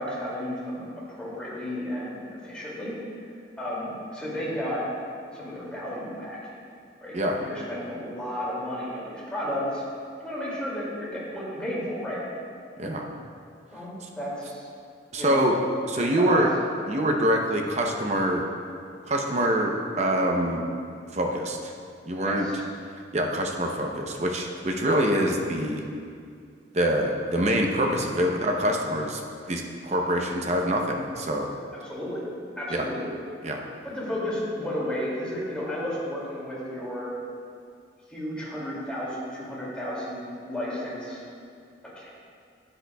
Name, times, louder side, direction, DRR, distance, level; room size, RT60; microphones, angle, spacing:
voice 1, 0.0-2.9 3.6-4.8 5.3-6.4 7.0-9.8 10.2-12.2 13.7-14.7 15.2-15.4 16.0-16.4 22.2-22.6 31.8-32.2 32.6-33.1 33.8-37.1 38.1-41.2 41.9-42.1, left 1 dB, 5° left, -8 dB, 2.3 m, -33 dB
voice 2, 15.1-15.5 15.9-16.5 16.9-18.4 19.1-20.6 21.1-21.7 22.1-22.5 23.1-25.8 26.7-29.2 29.5-31.5 32.7-32.9 33.4-33.6, right 1 dB, 35° right, 1 dB, 0.7 m, -25 dB
11.0 x 10.0 x 2.3 m, 2.3 s
head